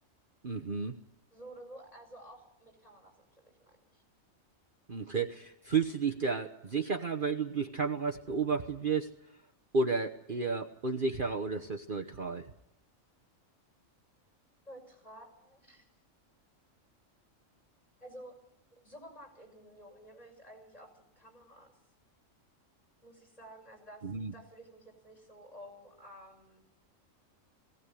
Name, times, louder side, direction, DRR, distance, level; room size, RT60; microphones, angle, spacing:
voice 1, 0.4-1.0 4.9-9.1 9.7-12.5 24.0-24.3, right 4 dB, 40° right, 5 dB, 1.2 m, -32 dB
voice 2, 1.3-4.0 14.6-15.9 18.0-18.3 18.7-21.7 23.0-24.0 24.3-26.6, right 1 dB, 30° left, 2 dB, 6.5 m, -52 dB
19.5 x 18.0 x 10.0 m, 0.81 s
omnidirectional pair, 1.4 m